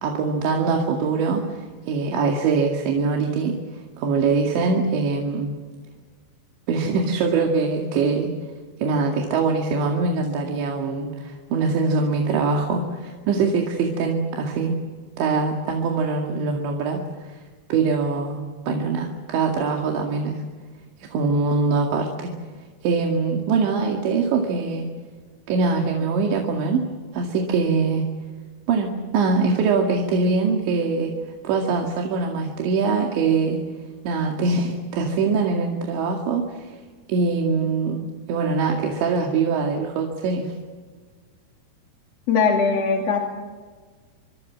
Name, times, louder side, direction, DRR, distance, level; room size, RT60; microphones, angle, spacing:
voice 1, 0.0-3.6 4.0-5.5 6.7-8.3 8.8-14.7 15.2-17.4 17.7-20.4 21.0-22.3 22.8-24.9 25.5-26.9 27.1-28.0 28.7-31.1 31.4-33.6 34.0-36.7 37.1-38.0 38.3-40.5, right 4 dB, 85° right, 1 dB, 4.5 m, -23 dB
voice 2, 42.3-43.2, left 5 dB, 45° left, 1 dB, 3.0 m, -20 dB
26.0 x 25.5 x 7.5 m, 1.5 s
omnidirectional pair, 5.1 m